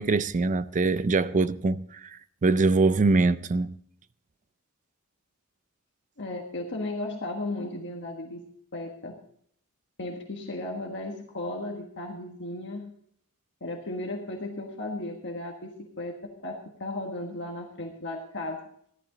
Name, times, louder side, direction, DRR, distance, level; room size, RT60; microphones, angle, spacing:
voice 1, 0.0-3.7, right 3 dB, 35° right, 0.4 m, -24 dB
voice 2, 6.2-8.4 8.7-9.2 10.0-12.9 13.6-16.1 16.4-18.6, left 2 dB, 55° left, 1.5 m, -35 dB
14.0 x 12.0 x 3.8 m
head